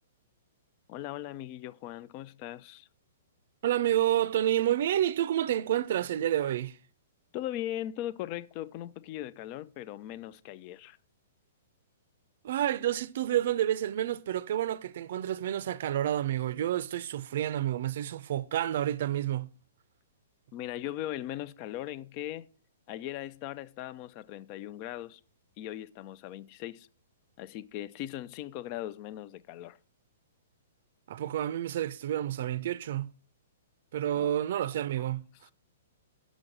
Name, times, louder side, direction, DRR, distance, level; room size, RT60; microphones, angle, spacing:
voice 1, 0.9-2.9 7.3-11.0 20.5-22.5 22.9-25.2 25.6-26.9 27.4-29.8 34.1-34.3 35.0-35.1, left 13 dB, 35° left, 0.4 m, -39 dB
voice 2, 3.6-6.8 12.4-19.5 31.1-33.1 33.9-35.3, right 12 dB, 60° right, 0.5 m, -29 dB
6.2 x 6.2 x 6.5 m
hypercardioid pair, 150°, 0 cm